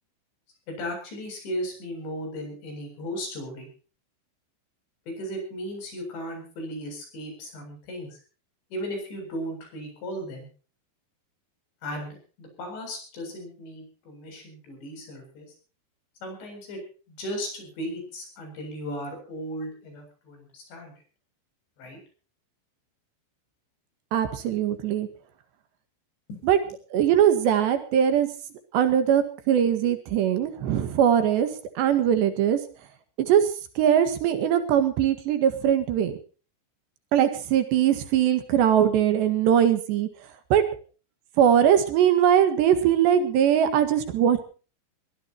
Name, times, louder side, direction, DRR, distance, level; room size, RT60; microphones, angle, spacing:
voice 1, 0.7-3.7 5.1-8.2 8.7-10.5 11.8-15.5 16.2-16.8 17.1-20.9 21.8-22.0 26.3-26.7, equal, 65° left, 4 dB, 9.7 m, -36 dB
voice 2, 24.1-25.1 26.4-26.6 26.9-28.3 28.7-31.5 31.8-32.6 33.2-33.5 33.8-36.2 37.1-40.1 40.5-40.7 41.4-44.4, right 9 dB, 70° right, 9 dB, 3.7 m, -21 dB
22.5 x 18.5 x 3.0 m, 0.38 s
omnidirectional pair, 5.4 m